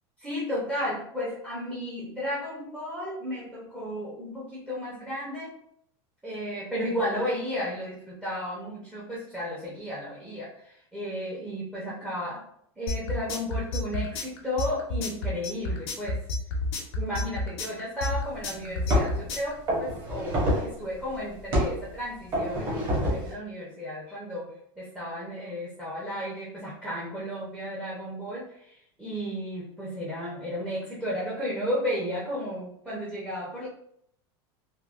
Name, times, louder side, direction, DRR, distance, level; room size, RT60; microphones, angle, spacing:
voice 1, 0.2-5.5 6.2-12.4 12.8-16.2 17.0-24.5 24.8-33.7, equal, 5° right, -7 dB, 0.6 m, -33 dB
sound 1, 12.9-19.5, left 2 dB, 75° left, 0.8 m, -29 dB
sound 2, 18.1-18.2 18.9-19.2 19.7-20.8 21.5-21.8 22.3-23.3, equal, 30° right, 1.0 m, -26 dB
3.4 x 2.1 x 2.4 m, 0.70 s
supercardioid pair, 160°, 14 cm